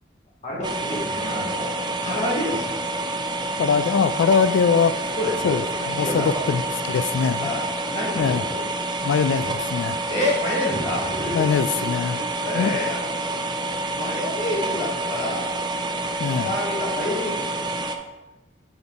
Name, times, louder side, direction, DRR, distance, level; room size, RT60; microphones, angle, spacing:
voice 1, 0.4-1.7 2.0-2.9 5.2-5.6 6.0-6.5 7.4-7.6 7.9-8.7 10.1-11.4 12.0-13.0 13.3-13.5 13.9-15.5 16.3-17.4 17.9-18.0, left 1 dB, 40° left, -4 dB, 1.2 m, -28 dB
sound 1, 0.6-18.0, right 2 dB, 25° right, 0.4 m, -28 dB
voice 2, 3.6-5.2 5.4-6.6 6.9-7.5 8.2-8.4 9.0-10.0 11.3-12.2 12.5-12.8 16.2-16.5, left 6 dB, 85° left, 13 dB, 0.3 m, -22 dB
6.9 x 4.1 x 3.5 m, 1.1 s
head